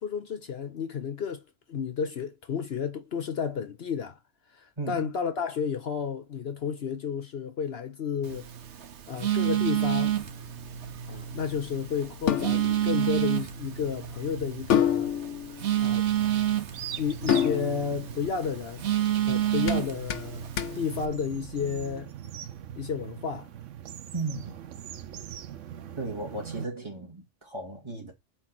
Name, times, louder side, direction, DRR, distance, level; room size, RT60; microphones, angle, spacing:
voice 1, 0.0-1.4 1.7-4.2 4.5-8.5 9.1-10.1 11.1-15.1 15.8-16.1 17.0-18.8 19.3-20.5 20.7-22.1 22.8-23.5, left 6 dB, 60° left, 1.0 m, -32 dB
voice 2, 4.8-5.1 24.1-24.6 26.0-28.1, right 3 dB, 25° right, 2.1 m, -35 dB
Telephone, 8.2-21.1, right 12 dB, 70° right, 1.1 m, -30 dB
sound 1, 9.8-21.9, left 9 dB, 85° left, 1.1 m, -32 dB
sound 2, 15.9-26.6, right 9 dB, 90° right, 1.0 m, -42 dB
4.5 x 4.5 x 5.9 m
omnidirectional pair, 1.2 m